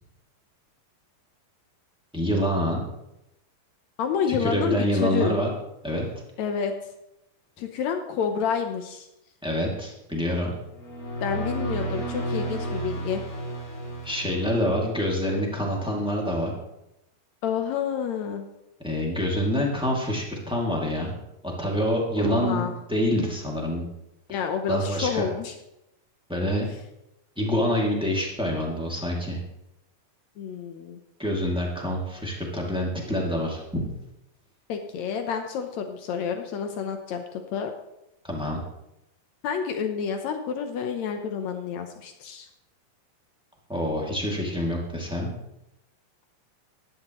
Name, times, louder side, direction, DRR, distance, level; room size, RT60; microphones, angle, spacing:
voice 1, 2.1-2.8 4.3-5.5 5.8-6.1 9.4-10.5 14.0-16.5 18.8-21.1 21.4-23.8 24.3-24.4 24.7-25.3 26.3-26.7 27.4-29.4 31.2-33.8 38.2-38.6 43.7-45.3, equal, ahead, -2 dB, 1.2 m, -26 dB
voice 2, 4.0-5.4 6.4-6.7 7.6-9.1 11.2-13.2 17.4-18.4 22.2-22.7 24.3-25.5 30.4-31.0 34.7-37.7 39.4-42.5, left 7 dB, 85° left, 6 dB, 1.5 m, -29 dB
sound 1, 10.7-15.0, right 2 dB, 65° left, 6.0 m, -32 dB
15.5 x 11.5 x 3.1 m, 0.88 s
omnidirectional pair, 4.3 m